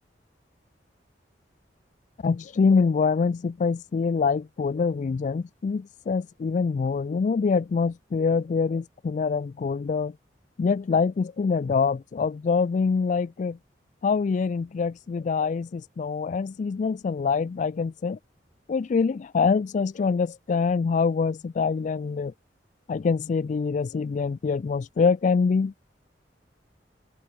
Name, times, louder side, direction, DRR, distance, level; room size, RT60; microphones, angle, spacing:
voice 1, 2.2-10.2 10.6-13.6 14.0-18.2 18.7-22.3 22.9-25.7, left 5 dB, 45° left, 0.3 m, -25 dB
open air
head